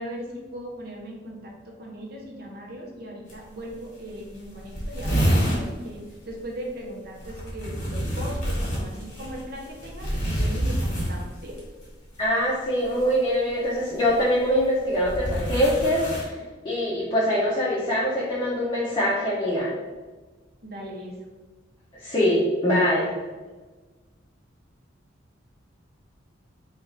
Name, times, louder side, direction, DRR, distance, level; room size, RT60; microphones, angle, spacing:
voice 1, 0.0-11.6 20.6-21.2, equal, 50° right, -1 dB, 0.8 m, -38 dB
sound 1, 3.3-3.4 3.7-3.8 4.1-4.2 4.3-5.7 7.2-11.6 12.8-13.2 14.0-16.2, equal, 40° left, 1.3 m, -27 dB
voice 2, 12.2-16.4 16.6-19.7 22.0-23.1, equal, 25° left, -7 dB, 0.6 m, -23 dB
4.3 x 2.4 x 3.1 m, 1.3 s
head